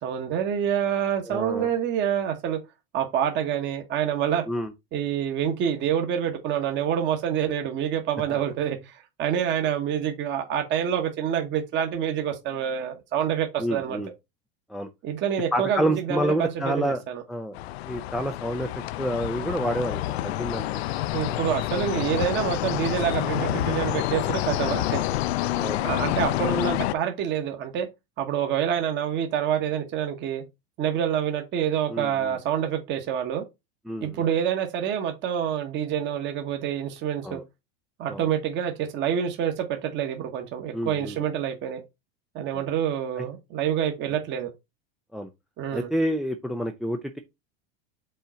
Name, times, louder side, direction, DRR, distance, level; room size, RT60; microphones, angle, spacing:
voice 1, 0.0-2.6 2.9-4.4 4.9-14.0 15.0-17.2 21.1-25.0 25.8-27.9 28.2-30.4 30.8-33.4 34.0-37.4 38.0-41.8 42.3-44.5 45.6-45.9, right 9 dB, 35° right, 1.2 m, -27 dB
voice 2, 1.3-1.7 4.5-4.7 8.3-8.4 13.6-14.1 14.7-14.9 15.5-17.0 17.3-17.6 17.8-18.7 19.0-21.4 25.5-25.9 31.9-32.3 33.9-34.3 37.2-37.4 38.1-38.2 40.7-41.2 42.5-42.6 43.2-43.3 45.1-45.3 45.7-47.2, equal, ahead, 0.4 m, -29 dB
sound 1, 17.5-26.9, left 15 dB, 80° left, 0.6 m, -28 dB
5.5 x 3.8 x 5.6 m
supercardioid pair, 140°, 31 cm